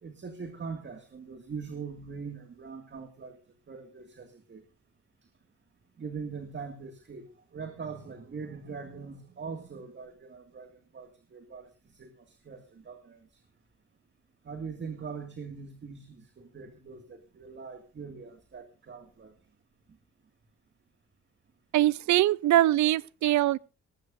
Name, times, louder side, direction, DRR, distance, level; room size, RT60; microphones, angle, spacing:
voice 1, 0.0-3.4 3.7-4.6 6.0-13.4 14.4-19.3, right 5 dB, 40° right, 2.1 m, -42 dB
voice 2, 21.7-23.6, right 14 dB, 70° right, 0.6 m, -23 dB
19.5 x 14.5 x 2.6 m
cardioid pair, 90°, 30 cm